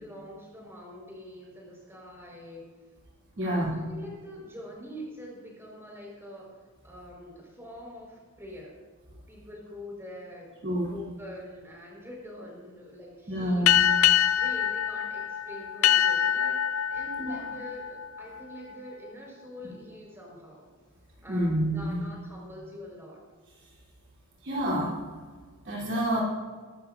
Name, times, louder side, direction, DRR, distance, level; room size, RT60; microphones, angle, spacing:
voice 1, 0.0-2.7 3.4-8.7 9.3-14.1 14.4-20.6 21.2-23.2, equal, 10° right, -3 dB, 4.5 m, -45 dB
voice 2, 3.4-3.7 10.6-10.9 13.3-13.8 17.2-17.3 21.3-22.0 24.4-24.9 25.6-26.2, equal, 55° right, -5 dB, 3.2 m, -28 dB
sound 1, 13.7-18.7, left 10 dB, 65° left, 0.5 m, -25 dB
21.5 x 12.5 x 2.5 m, 1.5 s
head